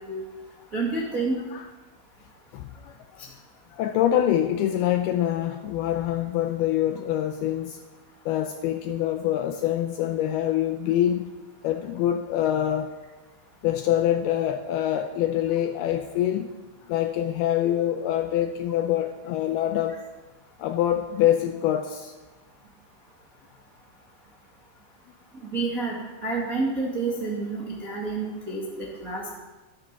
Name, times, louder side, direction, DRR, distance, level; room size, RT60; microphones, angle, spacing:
voice 1, 0.7-1.4 25.4-26.0 26.2-29.4, right 3 dB, 45° right, 1.1 m, -29 dB
voice 2, 2.5-3.2 3.7-7.8 8.3-11.4 11.6-12.9 13.6-16.5 16.9-20.0 20.6-22.1, left 11 dB, 85° left, 2.3 m, -25 dB
13.0 x 11.0 x 6.0 m
omnidirectional pair, 5.0 m